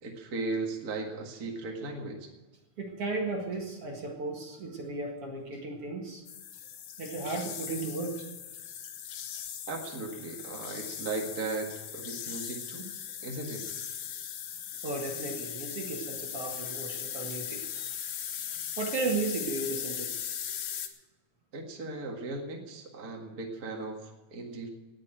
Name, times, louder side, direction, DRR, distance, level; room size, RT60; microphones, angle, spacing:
voice 1, 0.0-2.3 9.7-12.9 13.2-13.7 21.5-24.7, right 3 dB, 35° right, 1 dB, 1.9 m, -37 dB
voice 2, 2.8-6.2 7.0-8.3 14.8-18.2 18.5-20.1 20.5-20.6, right 3 dB, 50° right, 1 dB, 2.6 m, -35 dB
sound 1, 6.3-20.9, left 9 dB, 75° left, 2.5 m, -39 dB
18.5 x 6.5 x 9.0 m, 1.2 s
omnidirectional pair, 3.6 m